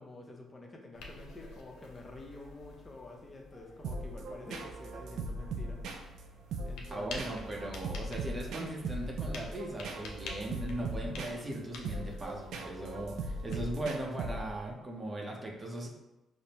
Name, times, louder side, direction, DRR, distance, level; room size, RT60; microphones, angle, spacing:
voice 1, 0.0-5.8 6.7-7.6, left 2 dB, 25° left, 0 dB, 0.7 m, -49 dB
sound 1, 0.9-13.7, left 3 dB, 85° left, 0.6 m, -49 dB
sound 2, 3.8-14.7, right 2 dB, 75° right, 0.4 m, -40 dB
voice 2, 6.9-15.9, right 1 dB, 30° right, 0 dB, 0.7 m, -38 dB
5.0 x 2.1 x 2.9 m, 1.0 s
cardioid pair, 90°, 0 cm